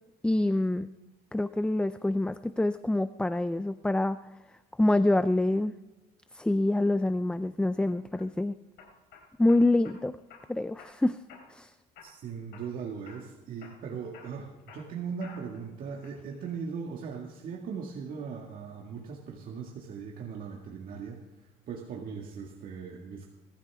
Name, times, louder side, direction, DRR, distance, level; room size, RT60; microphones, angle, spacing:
voice 1, 0.2-0.9 1.3-4.2 4.8-5.7 6.3-8.5 9.4-10.2 10.5-11.2 11.5-11.7, left 2 dB, 5° left, 13 dB, 0.4 m, -26 dB
sound 1, 7.9-8.2 8.8-10.0 10.3-10.9 11.3-11.7 12.0-12.7 13.1-13.3 13.6-15.6 16.0-16.5, left 5 dB, 80° left, 4.8 m, -52 dB
voice 2, 12.0-21.2 21.7-23.3, right 6 dB, 55° right, 0 dB, 1.9 m, -39 dB
21.5 x 13.5 x 3.6 m, 1.1 s
cardioid pair, 110°, 17 cm